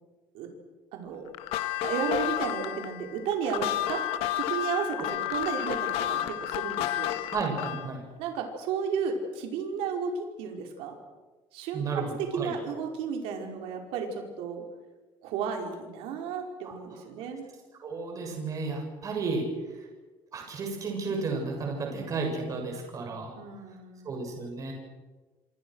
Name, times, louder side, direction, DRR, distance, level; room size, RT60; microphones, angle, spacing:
voice 1, 0.9-1.3 1.8-4.0 4.3-7.2 8.2-11.0 11.5-14.6 15.2-17.4 23.4-24.1, right 6 dB, 90° right, 3 dB, 5.1 m, -33 dB
sound 1, 1.3-7.9, left 12 dB, 85° left, 1.7 m, -31 dB
voice 2, 7.3-8.0 11.7-12.5 16.6-16.7 17.8-19.5 20.3-23.4 24.0-24.7, right 4 dB, 35° right, 2 dB, 7.5 m, -32 dB
27.0 x 27.0 x 6.5 m, 1.2 s
cardioid pair, 150°, 10 cm